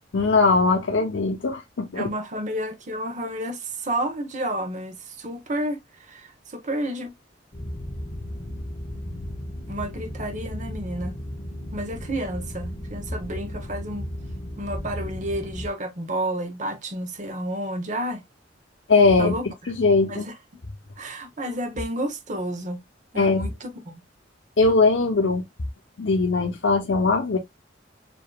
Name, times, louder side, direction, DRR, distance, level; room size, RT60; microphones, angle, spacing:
voice 1, 0.1-2.1 18.9-19.3 19.7-20.2 23.2-23.5 24.6-25.4 26.0-27.4, left 3 dB, 85° left, 0.8 m, -20 dB
voice 2, 1.9-7.1 9.7-11.2 11.7-14.1 14.6-18.2 19.2-19.7 20.1-20.3 21.0-22.8 23.1-23.9, right 1 dB, 40° right, 0.9 m, -31 dB
sound 1, 7.5-15.7, equal, 35° left, 1.1 m, -35 dB
7.0 x 2.8 x 2.2 m
head